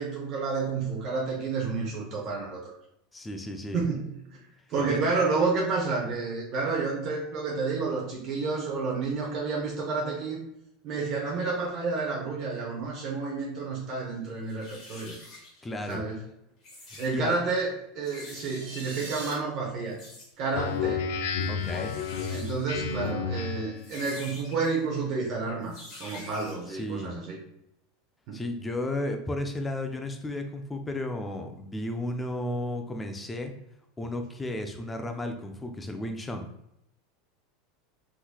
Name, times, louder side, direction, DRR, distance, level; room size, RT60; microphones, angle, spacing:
voice 1, 0.0-2.7 3.7-4.1 4.7-10.4 10.8-15.1 15.9-16.2 17.0-21.1 22.3-27.4 28.3-28.4, right 4 dB, 40° right, -2 dB, 0.8 m, -30 dB
voice 2, 3.1-3.8 4.7-5.0 15.6-16.0 17.1-17.4 21.5-21.9 26.7-27.1 28.3-33.5 34.0-36.5, left 1 dB, 10° left, 5 dB, 0.4 m, -33 dB
sound 1, 14.0-14.1 14.4-15.9 16.5-17.2 18.0-19.2 19.9-20.3 20.6-20.9 21.4-23.1 23.8-24.7 25.6-26.7, left 2 dB, 35° left, 1.3 m, -47 dB
sound 2, 18.1-19.3, right 2 dB, 80° right, 1.4 m, -40 dB
Speech synthesizer, 20.5-23.9, left 6 dB, 85° left, 0.4 m, -31 dB
3.7 x 3.1 x 2.2 m, 0.78 s
supercardioid pair, 160°, 0 cm